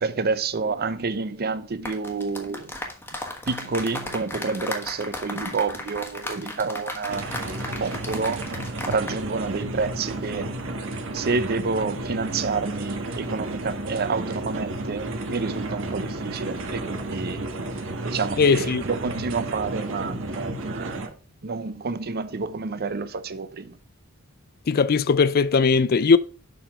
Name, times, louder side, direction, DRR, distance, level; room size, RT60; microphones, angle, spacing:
voice 1, 0.0-2.8 3.5-8.5 8.9-10.5 11.1-17.5 18.0-21.1 21.4-23.8, right 4 dB, 50° right, 0.6 m, -29 dB
sound 1, 1.7-9.2 9.5-9.7, left 1 dB, 10° left, 1.3 m, -35 dB
sound 2, 7.1-21.1, right 2 dB, 65° right, 1.3 m, -32 dB
voice 2, 18.4-18.8 24.7-26.2, left 5 dB, 45° left, 0.5 m, -19 dB
7.1 x 5.8 x 4.9 m
head